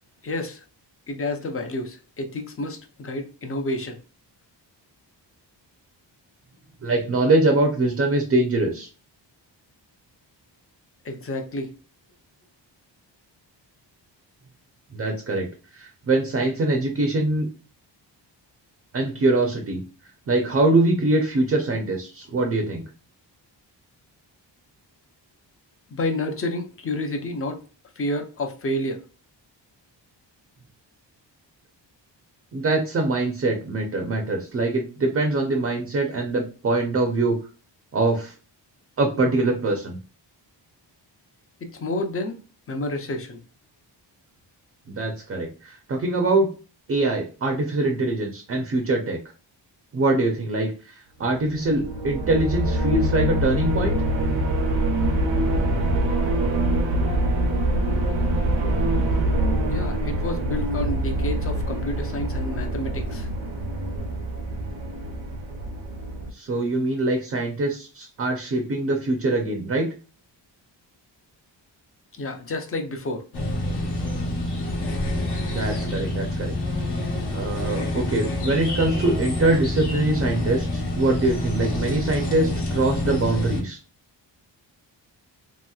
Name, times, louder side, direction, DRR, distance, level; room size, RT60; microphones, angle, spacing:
voice 1, 0.2-0.6 1.1-4.0 11.0-11.7 25.9-27.6 28.0-29.0 41.6-42.4 42.7-43.4 59.7-63.3 72.1-73.3, left 1 dB, 30° left, 4 dB, 0.5 m, -30 dB
voice 2, 6.8-8.9 14.9-15.5 15.7-17.5 18.9-19.8 20.3-22.8 32.5-37.4 37.9-38.3 39.0-40.0 44.9-46.5 46.9-49.2 49.9-54.0 66.3-69.9 75.5-76.5 77.3-83.8, right 2 dB, 35° right, 3 dB, 0.5 m, -23 dB
sound 1, 51.4-66.3, right 1 dB, 90° right, 0.8 m, -24 dB
sound 2, 73.3-83.6, left 1 dB, 65° left, 1.0 m, -27 dB
2.9 x 2.9 x 2.3 m, 0.35 s
wide cardioid pair, 140°, 44 cm